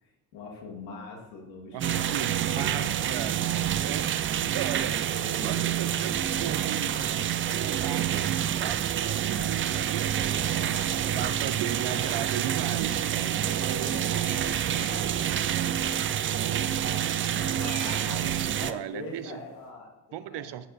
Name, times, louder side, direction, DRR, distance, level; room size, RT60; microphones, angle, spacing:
voice 1, 0.0-2.2 2.6-3.1 5.1-5.6 6.2-6.5 10.4-11.3 13.4-15.8 17.4-20.5, left 3 dB, 85° left, 0 dB, 1.7 m, -44 dB
voice 2, 1.7-3.4 3.8-10.3 11.1-14.0 17.4-19.4 20.1-20.7, right 11 dB, 55° right, 14 dB, 0.7 m, -37 dB
sound 1, 1.8-18.7, right 10 dB, 30° right, 0.3 m, -28 dB
sound 2, 4.7-5.1 5.4-5.8 6.1-7.2 7.6-8.0 8.6-9.7 10.0-10.5 10.9-11.7 12.0-12.3 12.6-13.1 13.4-13.8 14.1-14.4 14.9-15.3 15.6-16.0 16.6-17.7 18.2-18.7, left 2 dB, 15° left, 0.9 m, -47 dB
sound 3, 14.0-19.7, left 2 dB, 35° left, 2.5 m, -49 dB
14.5 x 6.4 x 2.6 m, 1.1 s
hypercardioid pair, 55°, 50 cm